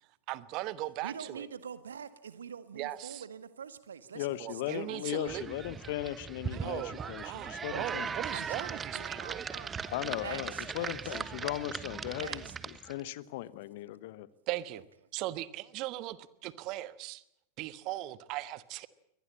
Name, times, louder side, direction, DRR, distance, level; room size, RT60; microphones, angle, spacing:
voice 1, 0.3-1.5 2.8-3.2 4.4-5.4 6.5-9.4 14.5-14.8 15.1-17.2 17.6-18.9, right 16 dB, 40° right, 17 dB, 1.2 m, -38 dB
voice 2, 1.0-5.4 8.3-9.8 10.2-11.2 12.2-12.6 13.9-14.0, right 7 dB, 70° right, 14 dB, 1.7 m, -45 dB
voice 3, 4.1-8.2 9.9-12.4 12.9-14.3, left 15 dB, 50° left, 19 dB, 1.0 m, -37 dB
sound 1, 5.3-13.0, right 6 dB, 20° right, 1.1 m, -39 dB
23.5 x 19.0 x 8.7 m, 0.80 s
figure-of-eight pair, 90°, 0 cm